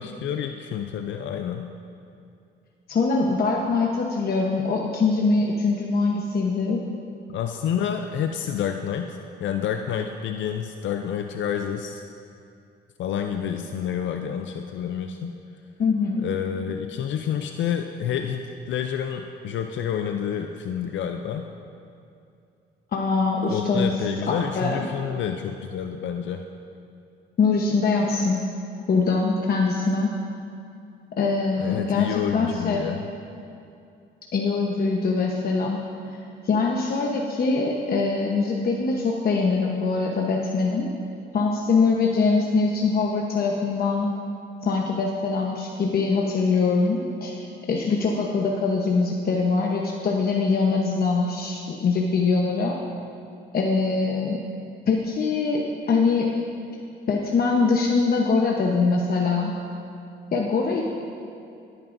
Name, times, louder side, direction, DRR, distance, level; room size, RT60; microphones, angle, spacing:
voice 1, 0.0-1.7 7.3-12.0 13.0-15.3 16.2-21.5 23.5-26.4 31.6-33.0, left 8 dB, 70° left, 5 dB, 0.5 m, -29 dB
voice 2, 2.9-6.8 15.8-16.2 22.9-24.0 24.3-24.9 27.4-28.4 28.9-30.1 31.2-32.8 34.3-35.8 36.4-40.9 41.3-44.1 44.6-52.8 53.5-54.4 54.9-56.3 57.1-59.5 60.3-60.8, left 4 dB, 50° left, -1 dB, 1.0 m, -23 dB
20.0 x 9.4 x 2.6 m, 2.5 s
cardioid pair, 90°, 20 cm